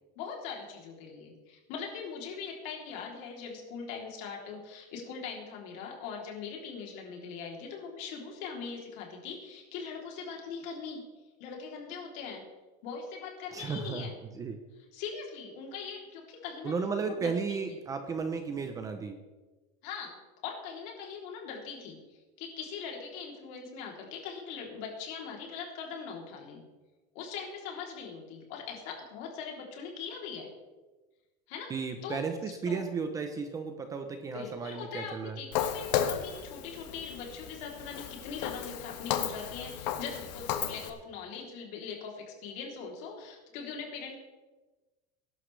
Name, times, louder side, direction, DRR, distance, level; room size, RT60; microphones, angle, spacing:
voice 1, 0.1-11.0 11.4-12.4 12.8-14.2 14.9-16.7 17.0-17.3 19.8-20.1 20.4-26.6 27.1-30.5 31.5-31.7 32.0-32.2 32.6-32.8 34.3-44.1, left 6 dB, 55° left, 0 dB, 3.3 m, -41 dB
voice 2, 13.5-14.1 14.3-14.6 16.6-19.2 31.7-35.4, right 5 dB, 15° right, 6 dB, 0.7 m, -34 dB
Walk footsteps, 35.5-40.9, left 9 dB, 85° left, 1.4 m, -34 dB
20.0 x 11.5 x 3.3 m, 1.2 s
cardioid pair, 180°, 21 cm